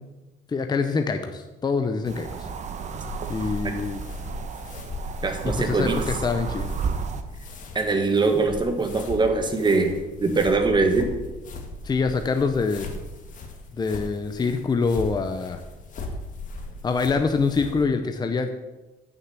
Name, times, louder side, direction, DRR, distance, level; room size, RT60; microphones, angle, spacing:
voice 1, 0.5-2.5 3.3-4.0 5.6-6.7 11.8-12.9 13.7-15.6 16.8-18.5, left 4 dB, 25° left, 7 dB, 0.7 m, -25 dB
sound 1, 2.1-7.2, right 5 dB, 45° right, 1.1 m, -32 dB
sound 2, 2.8-17.8, left 2 dB, 50° left, 2.0 m, -38 dB
voice 2, 5.2-6.0 7.7-11.1, right 3 dB, 25° right, 5 dB, 1.7 m, -22 dB
8.7 x 6.7 x 7.4 m, 1.1 s
cardioid pair, 110°, 17 cm